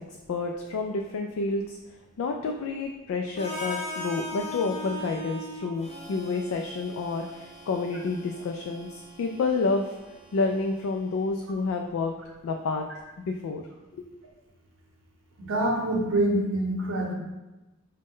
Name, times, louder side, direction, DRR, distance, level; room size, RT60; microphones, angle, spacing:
voice 1, 0.3-1.8 2.2-10.0 10.3-12.1 12.4-12.8 13.3-13.6 13.9-14.0, left 3 dB, 75° left, 3 dB, 0.3 m, -29 dB
Harmonica, 3.4-11.3, left 1 dB, 35° left, 0.7 m, -40 dB
voice 2, 15.4-17.1, right 1 dB, 65° right, 1 dB, 0.8 m, -25 dB
5.0 x 2.2 x 3.6 m, 1.1 s
head